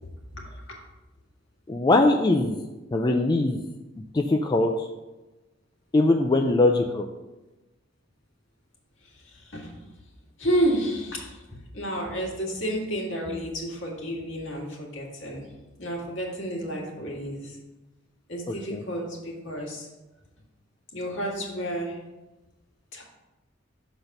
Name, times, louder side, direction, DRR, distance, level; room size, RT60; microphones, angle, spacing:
voice 1, 0.0-0.8 9.0-9.9 10.4-15.5 15.8-17.6 18.3-19.9 20.9-22.0 22.9-23.0, equal, 65° left, -2 dB, 2.0 m, -31 dB
voice 2, 1.7-2.6 2.9-3.6 4.1-4.9 5.9-7.1 18.7-18.8, left 2 dB, 20° left, 3 dB, 0.3 m, -21 dB
6.6 x 4.0 x 5.8 m, 1.1 s
head